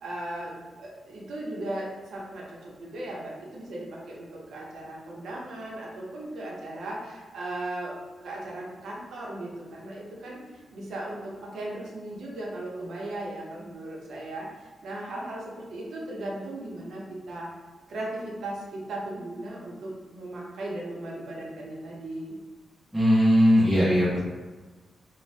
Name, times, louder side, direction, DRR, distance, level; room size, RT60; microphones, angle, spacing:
voice 1, 0.0-0.5 0.8-8.0 8.2-17.5 17.9-22.3, right 1 dB, 80° right, -4 dB, 0.7 m, -37 dB
voice 2, 22.9-24.2, equal, 5° right, -9 dB, 0.6 m, -19 dB
2.6 x 2.1 x 3.2 m, 1.3 s
cardioid pair, 95°, 0 cm